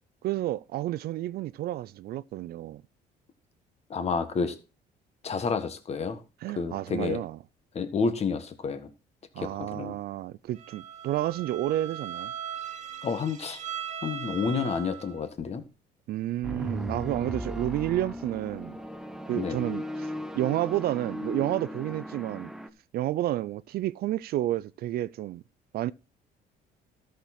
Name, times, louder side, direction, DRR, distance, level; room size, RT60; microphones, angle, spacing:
voice 1, 0.2-2.8 6.4-7.4 9.4-12.3 16.1-18.8 19.3-20.1 20.4-22.5 22.9-25.4 25.7-25.9, right 14 dB, 65° right, 0.5 m, -30 dB
voice 2, 3.9-4.5 5.2-6.2 6.5-7.2 7.7-8.9 9.4-9.9 13.0-13.6 14.0-15.6 19.3-19.6, left 5 dB, 40° left, 1.5 m, -30 dB
Bowed string instrument, 10.6-15.2, right 9 dB, 45° right, 1.3 m, -39 dB
sound 1, 16.4-22.7, equal, 5° right, 0.9 m, -37 dB
13.0 x 6.5 x 4.3 m
cardioid pair, 110°, 17 cm